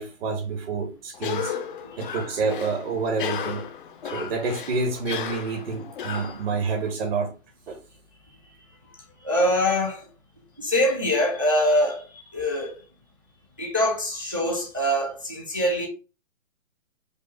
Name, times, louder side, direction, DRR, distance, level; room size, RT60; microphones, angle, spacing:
voice 1, 0.0-1.6 2.0-3.6 4.1-7.3 7.7-7.8, right 4 dB, 45° right, 1.0 m, -28 dB
Cough, 1.1-6.9, left 8 dB, 40° left, 0.5 m, -34 dB
voice 2, 9.2-10.0 10.6-12.0 12.3-12.7 13.6-15.9, left 1 dB, 20° right, 0.3 m, -23 dB
5.2 x 2.1 x 4.4 m
hypercardioid pair, 140°, 40 cm